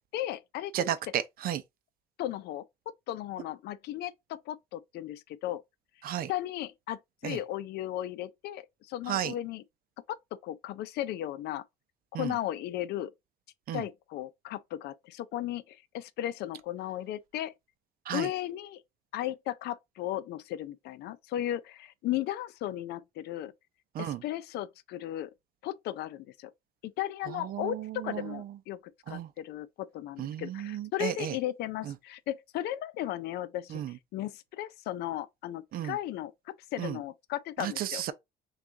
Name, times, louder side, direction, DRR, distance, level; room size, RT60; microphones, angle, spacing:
voice 1, 0.1-0.9 2.2-2.6 3.1-5.6 6.3-9.6 10.1-10.2 10.4-11.6 12.1-13.1 13.7-17.5 18.1-18.8 19.1-23.5 24.0-25.3 25.6-26.5 26.8-38.0, left 13 dB, 75° left, 0.5 m, -36 dB
voice 2, 0.7-1.6 6.0-6.3 7.2-7.4 9.1-9.3 12.1-12.3 13.7-13.8 18.1-18.3 23.9-24.2 27.3-28.4 29.1-29.3 30.2-31.4 31.9-32.0 33.7-33.9 35.7-36.0 36.8-37.0 37.6-38.1, right 11 dB, 60° right, 0.5 m, -33 dB
6.1 x 2.4 x 2.7 m
cardioid pair, 110°, 17 cm